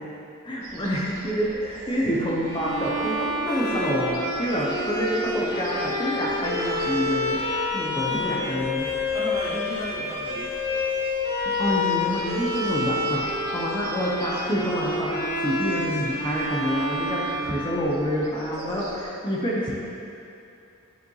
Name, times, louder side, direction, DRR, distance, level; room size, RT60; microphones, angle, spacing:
voice 1, 0.4-7.4 7.7-8.8 11.6-13.2 13.5-19.7, equal, 20° left, -4 dB, 0.8 m, -27 dB
sound 1, 0.6-19.1, right 2 dB, 80° right, 1.0 m, -43 dB
Bowed string instrument, 2.4-18.2, left 2 dB, 50° left, 1.0 m, -28 dB
voice 2, 3.4-4.5 8.0-10.6 17.1-17.5, right 1 dB, 15° right, -6 dB, 1.0 m, -37 dB
9.7 x 4.9 x 3.1 m, 2.8 s
head